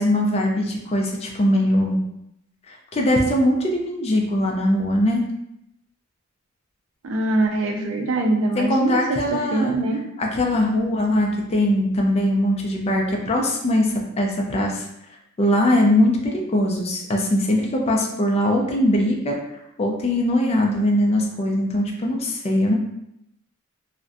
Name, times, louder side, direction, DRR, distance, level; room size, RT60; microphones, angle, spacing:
voice 1, 0.0-2.0 2.7-5.2 8.5-9.7 10.2-14.9 15.4-19.4 19.8-22.8, left 1 dB, 30° left, 0 dB, 0.3 m, -21 dB
voice 2, 7.0-10.0, right 2 dB, 65° right, 2 dB, 0.4 m, -23 dB
2.5 x 2.1 x 2.5 m, 0.82 s
head